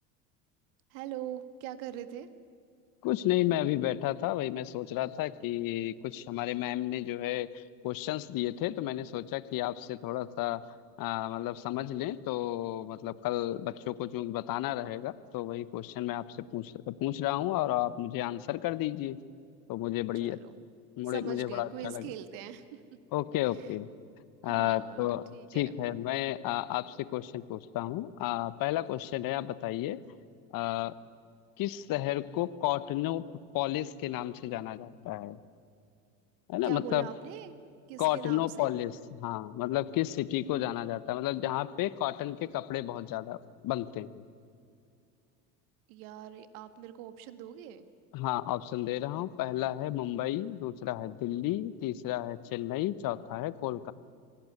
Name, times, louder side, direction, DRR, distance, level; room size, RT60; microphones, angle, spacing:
voice 1, 0.9-2.3 20.2-20.6 21.0-23.0 23.4-23.7 24.4-25.8 36.6-37.6 37.9-38.7 45.9-47.9, right 11 dB, 60° right, 11 dB, 1.9 m, -42 dB
voice 2, 3.0-10.6 11.0-16.2 16.5-19.2 19.7-20.4 21.0-22.1 23.1-23.9 24.4-30.0 30.5-30.9 31.6-33.2 33.5-35.4 36.5-37.1 38.0-38.9 39.2-43.4 43.6-44.2 48.1-53.9, left 14 dB, 45° left, 17 dB, 1.1 m, -32 dB
25.5 x 18.0 x 9.7 m, 2.4 s
hypercardioid pair, 80°, 48 cm